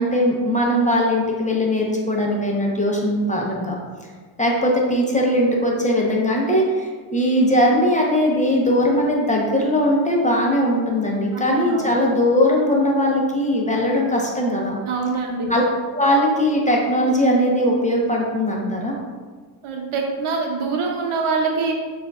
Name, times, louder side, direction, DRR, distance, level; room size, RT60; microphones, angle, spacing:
voice 1, 0.0-3.7 4.4-14.8 15.5-15.6 15.9-19.0, equal, 15° left, -2 dB, 0.8 m, -20 dB
voice 2, 11.3-11.9 14.9-15.5 19.6-21.7, right 4 dB, 80° right, 1 dB, 0.8 m, -24 dB
6.3 x 2.6 x 2.4 m, 1.5 s
cardioid pair, 70°, 49 cm